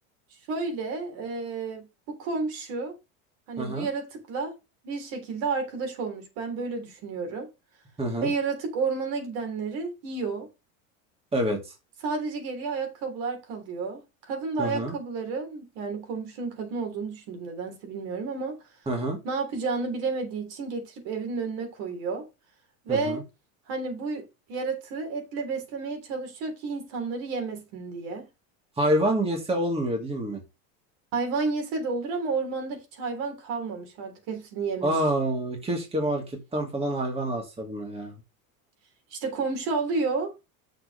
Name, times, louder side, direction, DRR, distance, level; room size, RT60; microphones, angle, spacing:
voice 1, 0.5-2.9 3.5-4.5 4.8-7.5 8.2-10.5 12.0-18.5 19.2-22.2 22.8-23.2 23.7-28.3 31.1-35.0 39.1-40.3, right 4 dB, 60° right, 3.5 m, -31 dB
voice 2, 3.6-3.9 8.0-8.3 11.3-11.6 14.6-14.9 18.9-19.2 22.9-23.2 28.8-30.4 34.8-38.1, right 1 dB, 15° right, 2.2 m, -27 dB
6.6 x 4.5 x 6.4 m
supercardioid pair, 135°, 41 cm